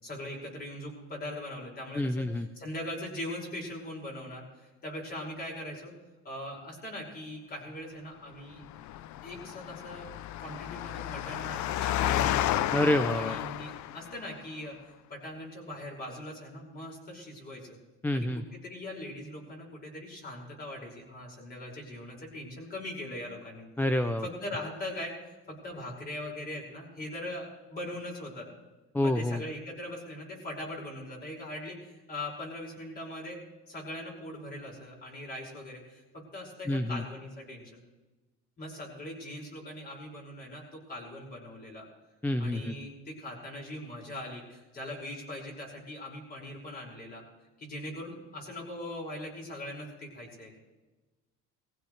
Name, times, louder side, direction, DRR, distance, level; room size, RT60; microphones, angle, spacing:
voice 1, 0.0-5.9 6.2-8.6 9.2-10.1 10.4-12.7 13.1-14.8 15.1-17.7 18.1-23.7 24.2-28.5 29.0-33.4 33.7-37.8 38.6-41.9 42.4-47.2 47.6-50.6, left 1 dB, 30° left, -2 dB, 5.7 m, -41 dB
voice 2, 1.9-2.5 12.7-13.4 18.0-18.4 23.8-24.3 28.9-29.4 36.7-37.0 42.2-42.7, left 1 dB, 5° left, 9 dB, 0.4 m, -27 dB
Engine, 8.6-14.3, left 13 dB, 60° left, 0.6 m, -32 dB
20.5 x 15.5 x 3.3 m, 1.1 s
cardioid pair, 145°, 32 cm